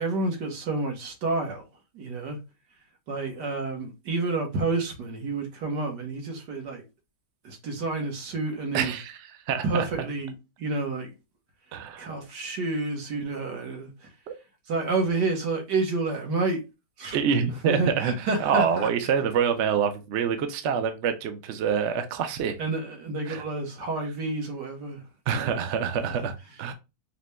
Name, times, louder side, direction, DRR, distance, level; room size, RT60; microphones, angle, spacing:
voice 1, 0.0-1.6 1.9-2.4 3.1-6.8 7.4-8.9 9.6-11.1 12.0-14.1 14.7-16.6 17.0-17.2 17.7-18.9 22.6-25.0 25.3-25.6, right 3 dB, 85° right, 1.7 m, -29 dB
voice 2, 8.7-9.2 9.5-9.9 11.7-12.1 14.3-14.4 17.1-18.1 18.4-22.6 23.3-23.4 25.3-26.7, right 7 dB, 65° right, 0.7 m, -26 dB
4.9 x 2.2 x 3.2 m
omnidirectional pair, 1.8 m